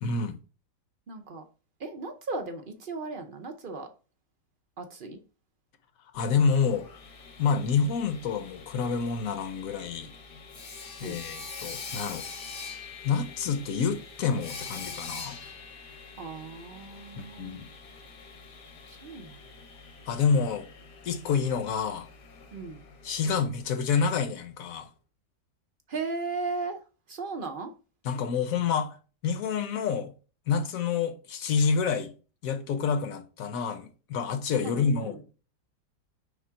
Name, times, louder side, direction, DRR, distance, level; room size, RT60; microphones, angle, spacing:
voice 1, 0.0-0.4 6.1-6.9 7.4-10.1 11.0-12.2 13.0-15.4 17.1-17.7 20.1-20.7 21.0-22.1 23.0-24.9 28.0-29.0 29.2-30.1 30.5-32.1 32.4-35.4, left 5 dB, 60° left, 1.2 m, -28 dB
voice 2, 1.1-1.4 1.8-3.9 4.8-5.2 11.0-11.2 16.2-17.6 18.9-19.4 22.5-22.8 25.9-26.8 27.1-27.7 34.6-35.2, right 3 dB, 60° right, 0.5 m, -36 dB
Sawing, 6.1-24.0, left 4 dB, 75° left, 1.8 m, -45 dB
5.2 x 3.6 x 5.6 m
omnidirectional pair, 1.8 m